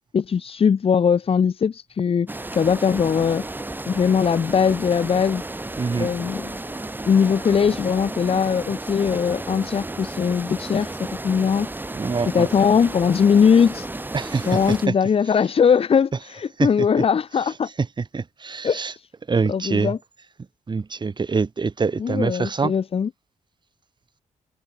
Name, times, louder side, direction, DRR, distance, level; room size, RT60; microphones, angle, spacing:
voice 1, 0.1-3.4 3.9-5.4 6.0-6.5 7.0-11.7 12.3-13.9 14.5-17.7 18.6-19.1 19.5-20.0 22.0-23.1, left 6 dB, 45° left, 1.1 m, -20 dB
sound 1, 2.3-14.9, right 2 dB, 15° right, 5.1 m, -33 dB
voice 2, 5.8-6.1 11.9-12.5 14.1-14.9 16.6-17.0 17.8-18.9 19.3-19.9 20.7-22.7, right 4 dB, 35° right, 4.6 m, -25 dB
cardioid pair, 95°, 14 cm